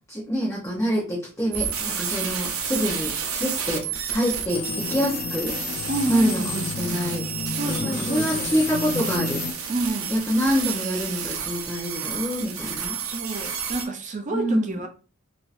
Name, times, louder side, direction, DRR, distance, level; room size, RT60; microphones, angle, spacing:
voice 1, 0.1-5.5 6.1-7.3 7.7-9.4 10.1-13.0 14.3-14.8, equal, 15° left, 0.9 m, -26 dB
sound 1, 1.5-13.8, right 7 dB, 75° right, 0.7 m, -31 dB
sound 2, 4.5-9.5, left 4 dB, 50° left, 0.4 m, -31 dB
voice 2, 5.9-6.7 7.5-8.5 9.7-10.1 13.0-14.9, right 2 dB, 35° right, 0.6 m, -29 dB
3.7 x 2.8 x 2.6 m
head